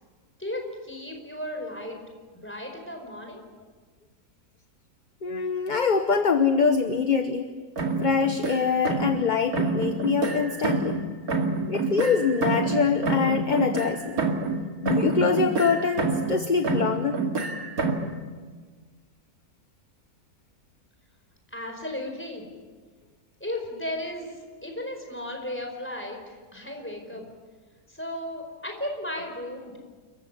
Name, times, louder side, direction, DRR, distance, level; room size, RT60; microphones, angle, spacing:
voice 1, 0.4-2.0 2.3-3.4 21.5-22.5 23.4-27.2 27.9-29.8, left 1 dB, 5° left, 2 dB, 4.9 m, -35 dB
voice 2, 5.2-7.5 8.0-11.0 11.7-14.2 14.8-17.2, left 5 dB, 35° left, 8 dB, 1.0 m, -24 dB
sound 1, 7.8-9.3 9.5-11.0 11.3-14.6 14.9-16.4 16.6-18.1, right 3 dB, 65° right, 2.8 m, -27 dB
28.5 x 15.0 x 9.8 m, 1.4 s
omnidirectional pair, 1.7 m